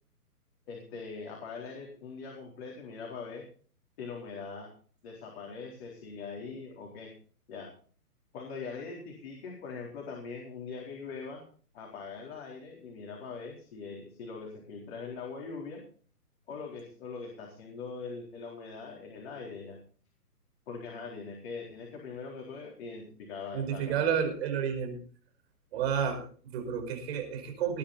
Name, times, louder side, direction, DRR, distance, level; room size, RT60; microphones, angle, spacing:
voice 1, 0.7-3.4 4.0-4.7 5.0-7.1 7.5-7.7 8.3-11.4 11.7-15.8 16.5-19.8 20.7-24.0, left 4 dB, 40° left, -1 dB, 4.3 m, -42 dB
voice 2, 23.5-25.0 25.7-27.8, right 7 dB, 40° right, 5 dB, 5.2 m, -31 dB
20.0 x 9.8 x 4.3 m, 0.42 s
hypercardioid pair, 145°, 47 cm